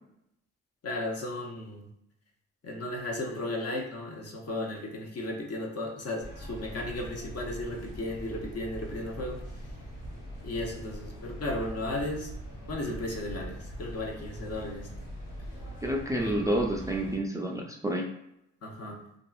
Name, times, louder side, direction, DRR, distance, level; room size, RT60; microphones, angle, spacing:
voice 1, 0.8-1.9 2.6-9.4 10.4-12.3 12.7-14.9 16.1-16.6 18.6-19.0, left 1 dB, 50° left, 1 dB, 0.7 m, -35 dB
sound 1, 6.2-17.2, equal, 80° left, 0.9 m, -42 dB
voice 2, 15.8-18.1, right 1 dB, 10° right, -1 dB, 0.4 m, -29 dB
2.6 x 2.4 x 2.3 m, 0.79 s
supercardioid pair, 55°, 32 cm